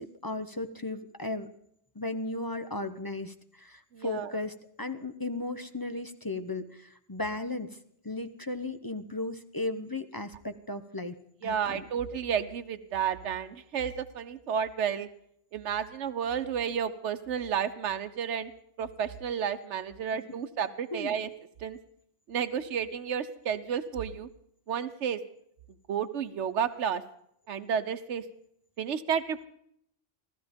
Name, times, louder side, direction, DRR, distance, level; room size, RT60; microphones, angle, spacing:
voice 1, 0.0-1.5 1.9-7.7 8.0-11.2 11.4-11.8 20.9-21.2, left 2 dB, 20° left, 9 dB, 0.7 m, -35 dB
voice 2, 3.9-4.3 11.4-15.1 15.5-18.5 18.8-21.3 21.6-21.8 22.3-24.3 24.7-25.2 25.9-27.0 27.5-28.2 28.8-29.4, right 8 dB, 80° right, 9 dB, 1.2 m, -31 dB
15.5 x 14.5 x 5.2 m, 0.71 s
omnidirectional pair, 1.2 m